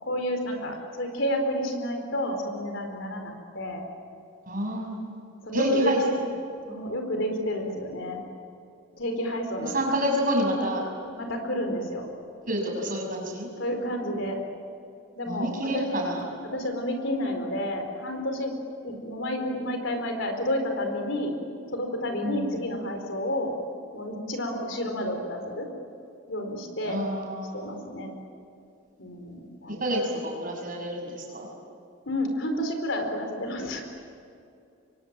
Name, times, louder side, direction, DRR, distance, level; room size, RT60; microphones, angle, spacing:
voice 1, 0.0-3.9 5.4-5.9 6.6-8.2 9.0-9.8 11.2-12.0 13.6-14.4 15.1-15.8 16.5-18.5 18.8-21.3 21.7-23.5 23.9-25.7 26.3-27.0 27.5-28.1 29.0-29.8 32.1-33.8, left 1 dB, 65° left, 4 dB, 4.5 m, -30 dB
voice 2, 4.5-5.2 5.5-6.2 9.6-10.8 12.5-13.5 15.3-16.3 22.2-22.6 26.8-27.8 29.7-31.5, equal, 40° right, 1 dB, 7.1 m, -28 dB
27.5 x 24.0 x 9.0 m, 2.5 s
head